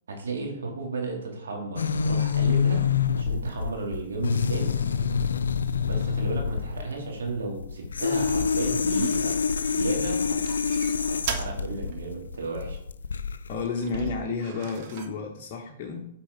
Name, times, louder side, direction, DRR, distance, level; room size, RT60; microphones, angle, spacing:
voice 1, 0.1-2.8 3.2-4.8 5.8-9.4 9.7-10.4 11.0-12.8, right 3 dB, 80° right, 1 dB, 2.5 m, -33 dB
sound 1, 1.8-13.6, left 6 dB, 85° left, 0.5 m, -26 dB
sound 2, 8.1-10.0 10.4-11.6 11.9-12.0 13.7-15.2, right 7 dB, 50° right, 0.9 m, -37 dB
voice 2, 13.5-16.1, left 4 dB, 40° left, -1 dB, 1.2 m, -31 dB
8.2 x 4.6 x 5.1 m, 0.78 s
hypercardioid pair, 130°, 0 cm